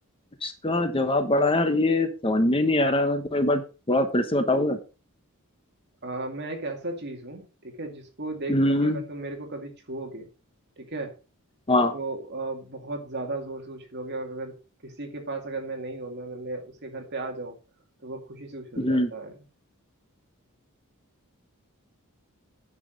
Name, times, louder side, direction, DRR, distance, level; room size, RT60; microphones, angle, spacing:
voice 1, 0.4-3.6 3.9-4.8 8.5-9.0 11.7-11.9 18.8-19.1, left 1 dB, 25° left, 8 dB, 1.0 m, -23 dB
voice 2, 6.0-10.3 10.8-11.2 11.9-14.6 14.8-17.6 18.0-19.4, right 2 dB, 50° right, 3 dB, 2.4 m, -35 dB
9.4 x 6.2 x 5.1 m, 0.32 s
head